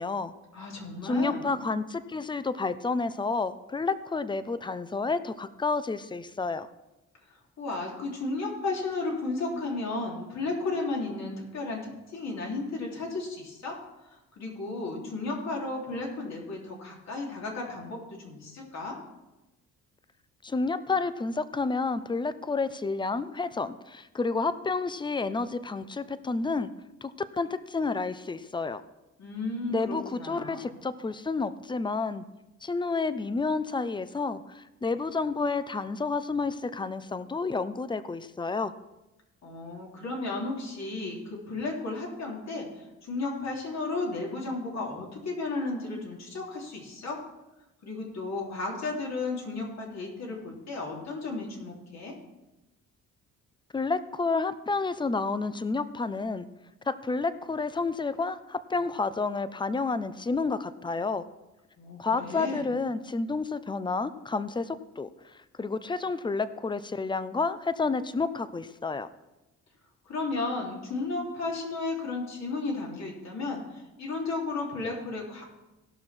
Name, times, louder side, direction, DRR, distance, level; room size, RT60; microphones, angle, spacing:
voice 1, 0.0-0.3 1.0-6.7 20.4-26.7 27.0-28.8 29.7-32.2 32.6-38.7 53.7-56.5 56.9-61.2 62.0-69.1, left 4 dB, 15° left, 14 dB, 0.6 m, -30 dB
voice 2, 0.5-1.6 7.6-13.8 14.4-19.0 29.2-30.8 39.4-47.2 47.8-52.1 61.8-62.7 70.1-75.4, left 3 dB, 60° left, -2 dB, 3.2 m, -34 dB
17.0 x 6.1 x 4.4 m, 0.99 s
cardioid pair, 90°, 30 cm